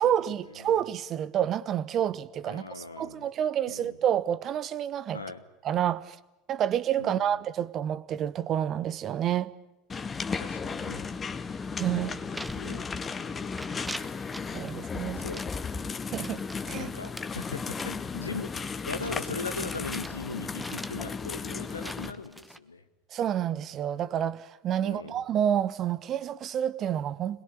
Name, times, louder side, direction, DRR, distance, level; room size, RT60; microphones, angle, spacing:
voice 1, 0.0-5.2 5.6-6.2 6.5-9.5 11.8-12.2 14.5-15.2 16.1-16.9 23.1-27.4, right 10 dB, 40° right, 1.2 m, -29 dB
voice 2, 2.5-3.3 3.7-4.0 5.1-5.4 7.0-7.4 10.4-11.1 12.5-12.9 15.1-15.5 16.7-22.8 24.8-25.2, left 3 dB, 85° left, 1.7 m, -39 dB
sound 1, 9.9-22.1, left 5 dB, 25° left, 1.8 m, -35 dB
sound 2, 12.3-13.2 13.5-14.7 15.1-20.2 20.6-22.6, right 1 dB, 5° right, 1.2 m, -44 dB
27.0 x 21.0 x 8.5 m
figure-of-eight pair, 75°, 0 cm